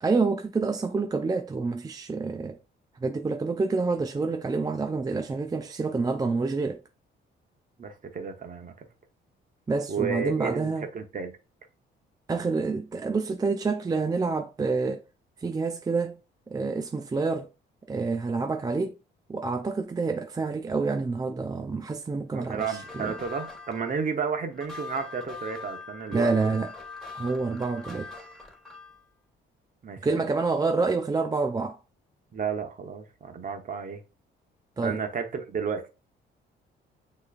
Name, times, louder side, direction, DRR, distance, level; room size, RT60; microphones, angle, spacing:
voice 1, 0.0-2.6 3.0-6.8 9.7-10.9 12.3-15.0 15.4-16.2 16.5-17.5 17.9-19.0 19.3-23.1 26.1-26.7 27.1-28.1 30.0-31.8 34.8-35.0, right 4 dB, 20° right, 0.4 m, -28 dB
voice 2, 7.8-8.9 9.9-11.3 22.3-26.5 29.8-30.1 32.3-34.0 34.8-35.9, right 6 dB, 45° right, 1.1 m, -32 dB
sound 1, 22.4-29.0, left 4 dB, ahead, 2.3 m, -42 dB
6.4 x 3.1 x 2.4 m
cardioid pair, 90°, 20 cm